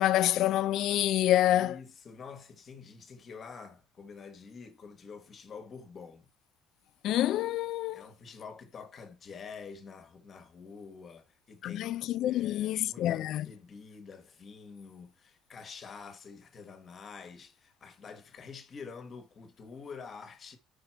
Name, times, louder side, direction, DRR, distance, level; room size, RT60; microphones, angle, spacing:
voice 1, 0.0-1.8 7.0-8.0 11.6-13.5, left 13 dB, 45° left, 0.4 m, -27 dB
voice 2, 1.5-6.3 7.9-20.6, left 5 dB, 25° left, 1.1 m, -47 dB
5.8 x 5.2 x 4.5 m
cardioid pair, 175°, 0 cm